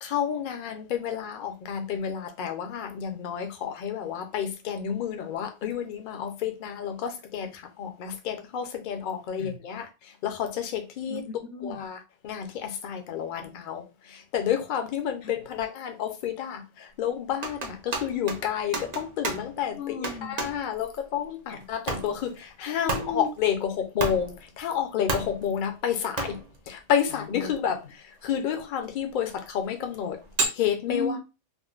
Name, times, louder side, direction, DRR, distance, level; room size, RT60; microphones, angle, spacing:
voice 1, 0.0-7.5 7.8-9.9 10.2-11.2 11.6-12.0 12.2-13.8 14.1-19.8 20.2-26.4 26.7-27.8 28.2-30.2 30.6-31.1, left 8 dB, 55° left, 0.6 m, -30 dB
voice 2, 11.1-11.8 15.2-15.3 19.7-20.4 21.5-21.6 22.9-23.3 27.1-27.8 30.9-31.2, left 3 dB, 70° left, 0.9 m, -36 dB
sound 1, 17.4-19.6 20.0-20.7 21.6-22.4 22.9-23.3 24.0-24.4 25.1-25.6 26.2-26.6 27.7-27.8 28.2-28.3 29.0-29.5 30.2-30.5, right 3 dB, 45° right, 0.6 m, -31 dB
3.7 x 2.0 x 2.4 m
omnidirectional pair, 1.3 m